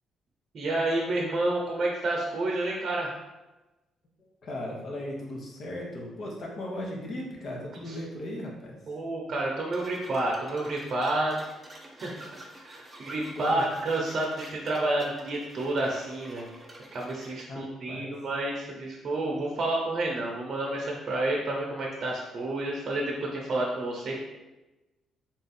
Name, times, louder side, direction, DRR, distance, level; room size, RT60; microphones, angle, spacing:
voice 1, 0.5-3.2 8.9-11.4 12.0-12.2 12.6-16.5 16.9-24.1, right 2 dB, 55° right, -1 dB, 0.7 m, -29 dB
voice 2, 4.4-8.8 13.4-13.6 17.5-18.1, left 1 dB, 55° left, -1 dB, 1.0 m, -37 dB
sound 1, 9.7-17.5, right 1 dB, 20° right, 0.7 m, -49 dB
3.6 x 2.5 x 4.2 m, 1.1 s
cardioid pair, 90°, 0 cm